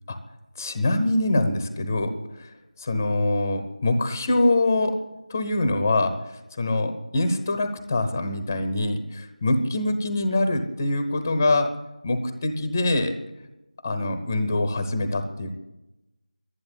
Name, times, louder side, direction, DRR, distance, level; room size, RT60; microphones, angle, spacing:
voice 1, 0.6-2.5 2.8-5.0 5.3-11.7 12.0-13.1 13.8-15.5, left 2 dB, 15° left, 9 dB, 1.0 m, -24 dB
11.5 x 10.5 x 9.8 m, 0.94 s
figure-of-eight pair, 175°, 4 cm